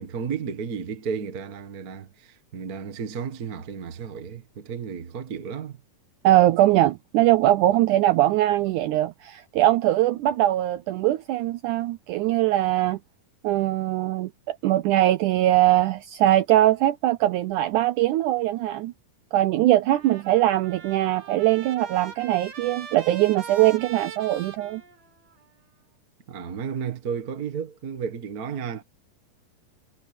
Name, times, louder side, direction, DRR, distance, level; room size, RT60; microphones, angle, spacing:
voice 1, 0.0-5.8 26.3-28.8, right 6 dB, 45° right, 1.1 m, -33 dB
voice 2, 6.2-13.0 13.4-18.9 19.3-24.8, right 14 dB, 85° right, 1.8 m, -21 dB
Trumpet, 19.9-25.5, right 6 dB, 65° right, 5.2 m, -42 dB
omnidirectional pair, 4.2 m